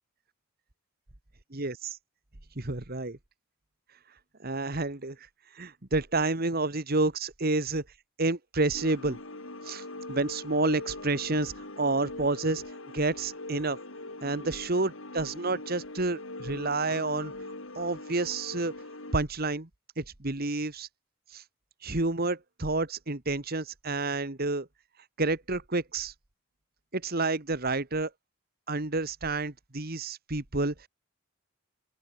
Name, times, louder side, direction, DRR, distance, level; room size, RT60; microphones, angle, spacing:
voice 1, 1.5-2.0 2.6-3.2 4.4-5.2 5.5-7.8 8.2-9.2 9.6-12.6 12.9-13.8 14.2-17.3 17.8-18.7 19.1-19.7 20.0-20.9 21.3-21.4 21.8-24.7 25.2-26.1 26.9-28.1 28.7-30.9, right 2 dB, 45° right, 1.8 m, -29 dB
sound 1, 8.7-19.2, left 2 dB, 65° left, 3.4 m, -42 dB
open air
head